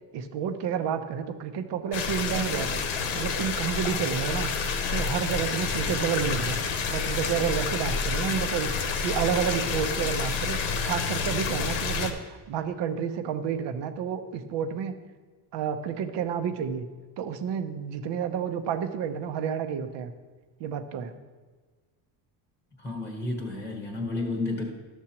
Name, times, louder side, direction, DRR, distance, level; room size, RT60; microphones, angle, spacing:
voice 1, 0.1-6.6 6.9-8.7 9.0-10.6 10.8-14.9 15.5-16.9 17.2-20.1 20.6-21.1, right 8 dB, 60° right, 8 dB, 0.8 m, -30 dB
sound 1, 1.9-12.1, left 5 dB, 70° left, 1.1 m, -29 dB
voice 2, 22.8-24.7, left 2 dB, 5° left, 2 dB, 1.0 m, -31 dB
12.0 x 7.2 x 2.9 m, 1.4 s
cardioid pair, 125°, 47 cm